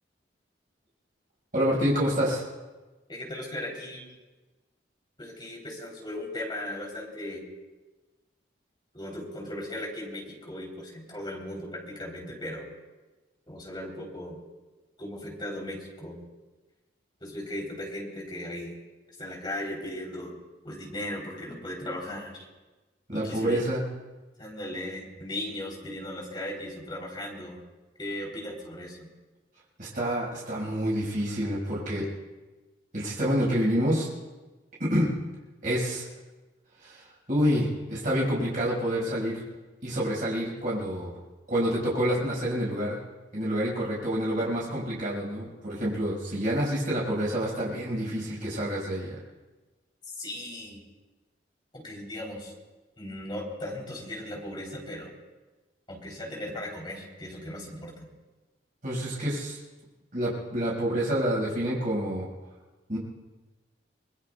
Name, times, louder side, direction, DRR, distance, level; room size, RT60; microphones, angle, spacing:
voice 1, 1.5-2.4 23.1-23.8 29.8-32.1 32.9-34.1 34.8-35.1 35.6-36.1 36.8-39.4 39.8-41.1 41.5-43.0 43.3-49.2 58.8-59.6 60.1-62.3 62.9-63.0, equal, 45° right, -6 dB, 5.6 m, -28 dB
voice 2, 3.1-4.1 5.2-7.4 8.9-12.7 13.5-14.4 15.0-16.2 17.2-18.7 19.2-20.3 20.6-22.5 23.1-23.6 24.4-27.6 28.0-29.1 50.1-50.8 51.7-52.5 53.0-55.1 55.9-58.1, left 1 dB, 25° left, -2 dB, 3.5 m, -37 dB
25.0 x 21.5 x 2.4 m, 1.2 s
head